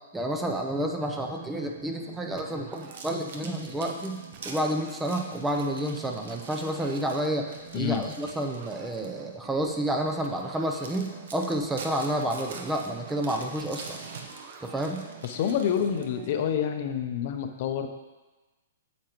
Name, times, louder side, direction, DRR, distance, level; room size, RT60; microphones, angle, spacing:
voice 1, 0.1-14.0 14.6-15.0, right 1 dB, 5° right, 2 dB, 0.6 m, -30 dB
sound 1, 1.1-16.7, right 7 dB, 40° right, 0.8 m, -47 dB
sound 2, 2.7-9.2 9.7-9.9 10.4-10.5 10.8-16.3, right 4 dB, 65° right, 1.0 m, -45 dB
voice 2, 7.7-8.0 15.2-17.9, left 8 dB, 50° left, 6 dB, 0.7 m, -28 dB
8.3 x 7.2 x 3.0 m, 1.2 s
hypercardioid pair, 140°, 0 cm